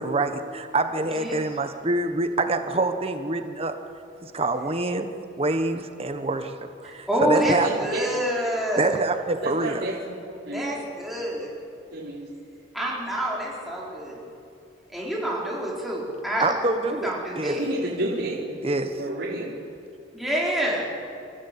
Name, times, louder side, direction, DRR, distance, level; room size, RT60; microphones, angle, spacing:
voice 1, 0.0-3.8 4.2-5.1 5.4-6.5 6.8-7.7 8.8-9.9 16.4-17.6 18.6-19.0, right 2 dB, 30° right, 8 dB, 1.1 m, -26 dB
voice 2, 6.8-8.9 10.5-11.5 12.7-14.2 14.9-16.4 16.9-17.6 20.1-20.8, equal, ahead, -5 dB, 4.7 m, -27 dB
voice 3, 7.6-8.1 9.4-10.1 10.4-10.8 11.9-12.3 17.5-18.6 19.0-19.5, right 1 dB, 85° right, -7 dB, 3.9 m, -30 dB
27.5 x 15.0 x 8.5 m, 2.6 s
head